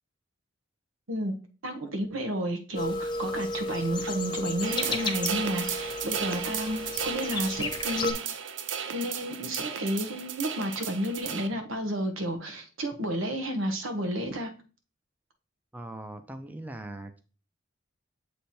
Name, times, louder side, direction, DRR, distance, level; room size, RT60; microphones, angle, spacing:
voice 1, 1.6-8.3 8.9-14.5, equal, 90° right, 5 dB, 1.2 m, -31 dB
sound 1, 2.7-8.1, left 2 dB, 20° left, 0.8 m, -33 dB
sound 2, 4.6-11.5, right 8 dB, 65° right, 0.5 m, -34 dB
voice 2, 15.7-17.2, right 1 dB, 10° right, 7 dB, 0.5 m, -40 dB
7.5 x 3.4 x 4.3 m, 0.35 s
head